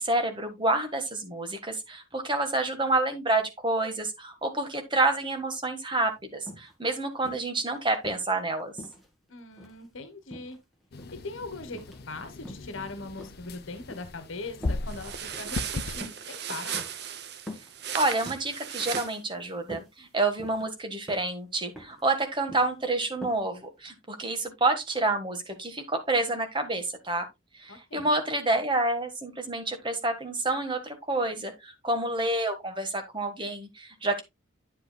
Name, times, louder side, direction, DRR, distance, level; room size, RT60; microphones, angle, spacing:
voice 1, 0.0-8.7 17.9-27.3 27.6-34.2, right 2 dB, 25° right, 1.5 m, -28 dB
sound 1, 6.0-6.1 6.5-6.7 7.2-8.3 8.8-9.9 10.3-11.2 11.7-12.0 12.4-12.7 13.2-14.2 14.6-14.9 15.3-15.6 16.0-16.2 16.7-17.0 17.5-17.7 18.1-18.5 18.9-19.2 19.5-19.9 20.4-20.7 21.1-21.3 21.8-22.0 22.3-22.7 23.2-23.4 23.8-23.9, left 1 dB, ahead, 1.8 m, -44 dB
voice 2, 9.3-10.6 11.2-16.9 27.7-28.1, left 3 dB, 75° left, 1.3 m, -40 dB
sound 2, 10.9-16.0, left 3 dB, 50° left, 0.5 m, -37 dB
sound 3, 14.9-19.2, right 8 dB, 50° right, 0.7 m, -36 dB
9.5 x 7.9 x 2.2 m
head